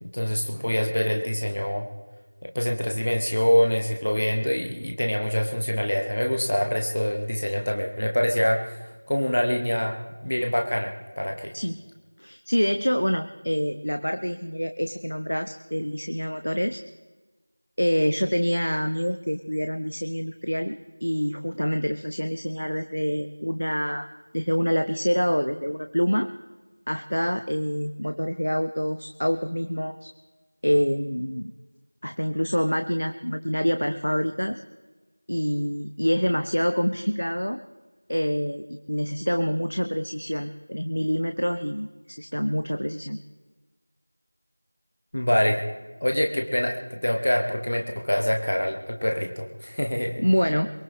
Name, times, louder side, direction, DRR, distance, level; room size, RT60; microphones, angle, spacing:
voice 1, 0.0-1.9 2.4-8.8 9.1-11.5 45.1-45.6 46.0-50.2, equal, 20° left, 3 dB, 0.8 m, -25 dB
voice 2, 12.2-16.8 17.8-24.1 24.3-26.3 26.9-30.1 30.6-31.5 32.0-34.6 35.3-37.6 38.1-43.2 50.2-50.7, equal, 60° left, 8 dB, 0.8 m, -26 dB
23.0 x 19.5 x 3.1 m, 1.2 s
figure-of-eight pair, 180°, 0 cm